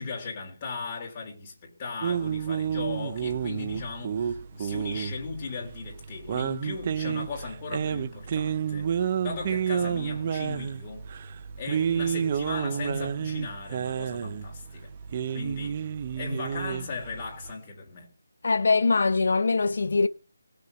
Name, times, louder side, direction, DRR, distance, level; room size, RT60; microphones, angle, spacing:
voice 1, 0.0-11.1 11.6-14.9 15.3-15.9 16.1-18.1, left 4 dB, 20° left, 3.5 m, -37 dB
sound 1, 2.0-17.5, right 8 dB, 25° right, 0.6 m, -30 dB
voice 2, 18.4-20.1, left 4 dB, 55° left, 0.7 m, -22 dB
20.0 x 6.8 x 6.5 m
figure-of-eight pair, 175°, 0 cm